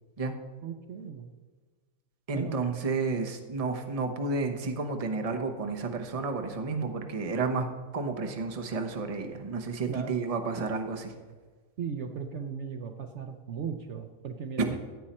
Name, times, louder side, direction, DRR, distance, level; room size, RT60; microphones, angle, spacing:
voice 1, 0.6-1.3 2.3-2.6 9.9-10.2 11.8-14.8, right 6 dB, 60° right, 6 dB, 0.9 m, -37 dB
voice 2, 2.3-7.7 7.9-11.1 14.6-14.8, right 4 dB, 30° right, 5 dB, 0.9 m, -31 dB
15.5 x 8.7 x 4.3 m, 1.4 s
omnidirectional pair, 1.5 m